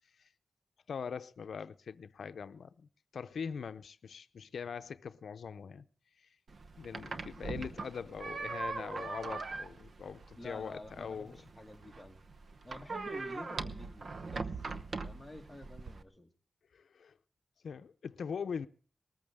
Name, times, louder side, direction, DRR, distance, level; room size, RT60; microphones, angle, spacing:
voice 1, 0.9-5.8 6.2-6.3 6.8-11.4 16.7-17.1 17.6-18.7, left 6 dB, 85° left, 0.6 m, -42 dB
sound 1, 6.5-16.0, right 3 dB, 60° right, 0.9 m, -41 dB
voice 2, 10.4-12.2 12.6-14.5 15.0-16.3, left 1 dB, 5° left, 1.9 m, -49 dB
20.0 x 14.0 x 3.6 m
wide cardioid pair, 105°, 0 cm